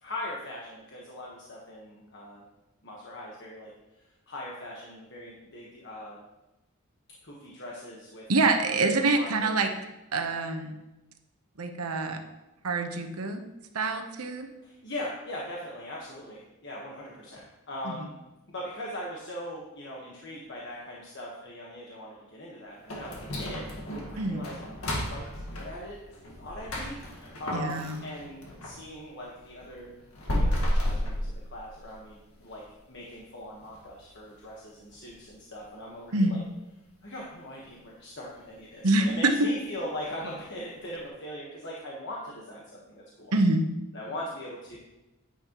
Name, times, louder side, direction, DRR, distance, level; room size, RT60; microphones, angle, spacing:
voice 1, 0.0-2.4 2.8-3.7 4.3-6.2 7.2-8.8 9.1-9.5 14.6-18.1 18.5-26.1 26.4-29.9 30.4-32.6 32.9-36.4 37.0-43.3 43.9-44.8, left 1 dB, 50° left, -4 dB, 1.3 m, -40 dB
voice 2, 8.3-9.7 10.1-10.8 11.6-12.2 12.6-13.5 13.7-14.5 17.8-18.1 24.2-24.4 27.5-28.1 36.1-36.3 38.8-39.5 43.3-43.6, right 2 dB, 85° right, 5 dB, 1.0 m, -26 dB
sound 1, 22.9-28.8 29.2-32.0 32.4-32.5 33.0-33.1 33.6-33.9 34.3-34.4 34.9-35.0, equal, 75° left, 1.7 m, -32 dB
9.7 x 9.5 x 3.0 m, 1.0 s
head